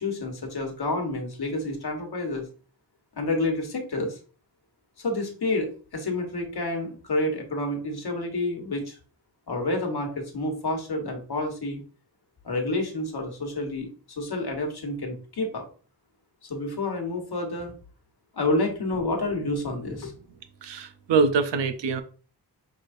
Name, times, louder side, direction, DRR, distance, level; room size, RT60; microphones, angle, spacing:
voice 1, 0.0-2.4 3.2-4.2 5.0-9.0 9.5-11.8 12.4-15.7 16.4-17.7 18.3-20.1, left 2 dB, 65° left, 2 dB, 1.4 m, -29 dB
voice 2, 20.6-22.0, right 5 dB, 85° right, 9 dB, 0.6 m, -24 dB
6.1 x 3.1 x 2.6 m, 0.39 s
wide cardioid pair, 85°, 42 cm